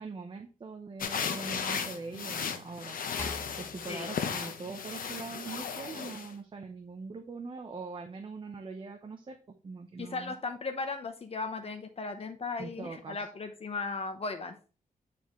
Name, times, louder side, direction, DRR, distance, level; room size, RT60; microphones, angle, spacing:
voice 1, 0.0-3.0 3.6-9.4 9.6-10.3 12.6-13.3, right 4 dB, 35° right, 4 dB, 0.7 m, -42 dB
sound 1, 1.0-6.3, left 6 dB, 80° left, 0.8 m, -35 dB
sound 2, 3.2-5.6, left 2 dB, 20° left, 0.5 m, -46 dB
voice 2, 10.0-14.5, left 4 dB, 45° left, 7 dB, 0.8 m, -36 dB
9.2 x 4.3 x 3.0 m, 0.36 s
wide cardioid pair, 130°, 14 cm